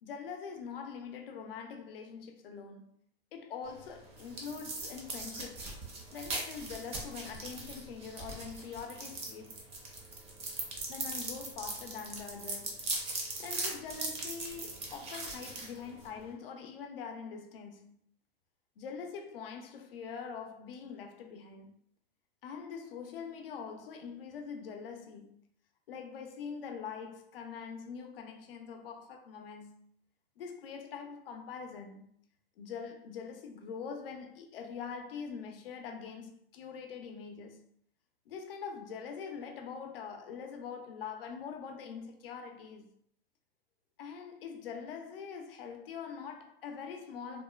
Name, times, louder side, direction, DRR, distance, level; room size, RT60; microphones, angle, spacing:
voice 1, 0.0-2.9 3.3-5.7 6.1-9.6 10.9-12.9 13.4-18.0 18.8-21.7 22.4-25.3 25.9-29.9 30.4-32.2 32.6-37.6 38.3-42.9 44.0-47.4, left 6 dB, 65° left, 0.6 m, -44 dB
sound 1, 3.6-16.3, right 2 dB, 20° right, 0.5 m, -40 dB
2.8 x 2.1 x 2.2 m
hypercardioid pair, 115°, 31 cm